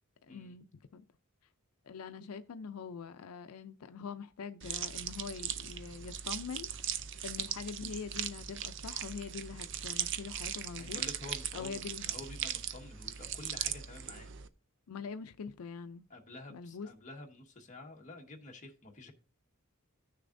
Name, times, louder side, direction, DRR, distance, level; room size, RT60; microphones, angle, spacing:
voice 1, 0.3-1.0 1.8-11.0 11.5-12.1 14.9-16.1 16.5-16.9, left 5 dB, 90° left, 0.5 m, -44 dB
sound 1, 4.6-14.5, right 9 dB, 60° right, 0.5 m, -39 dB
voice 2, 10.8-14.3 16.1-19.1, left 2 dB, 35° left, 1.5 m, -49 dB
15.5 x 6.6 x 2.6 m
head